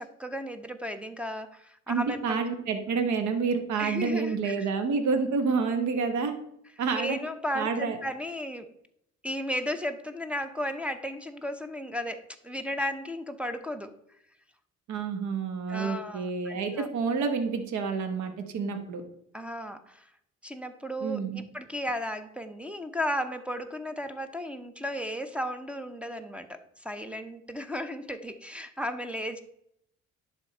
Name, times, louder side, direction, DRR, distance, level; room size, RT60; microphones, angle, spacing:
voice 1, 0.0-2.4 3.8-4.7 6.9-8.7 9.2-13.9 15.7-16.9 19.3-20.1 20.4-29.4, equal, 5° right, 5 dB, 0.6 m, -34 dB
voice 2, 1.9-6.3 6.8-7.2 7.5-8.0 14.9-19.0 21.0-21.4, right 5 dB, 70° right, 7 dB, 1.1 m, -28 dB
10.5 x 3.5 x 4.3 m, 0.74 s
cardioid pair, 90°, 30 cm